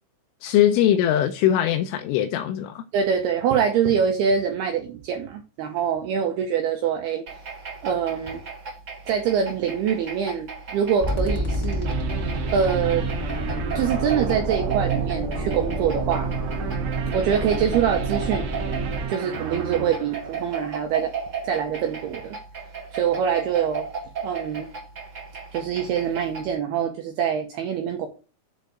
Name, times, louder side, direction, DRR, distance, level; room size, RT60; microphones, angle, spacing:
voice 1, 0.4-2.8, left 11 dB, 80° left, 3.1 m, -21 dB
voice 2, 2.9-7.2 7.8-8.4 9.1-11.9 12.5-13.0 13.7-16.3 17.1-18.5 19.1-21.1 21.4-22.4 22.9-23.9 24.2-24.7 25.5-28.1, right 7 dB, 80° right, 2.3 m, -24 dB
sound 1, 7.3-26.6, right 5 dB, 30° right, 2.9 m, -35 dB
sound 2, 11.0-19.0, equal, 10° left, 2.2 m, -29 dB
sound 3, 11.9-20.9, right 8 dB, 60° right, 2.9 m, -31 dB
7.7 x 5.3 x 6.2 m
omnidirectional pair, 5.7 m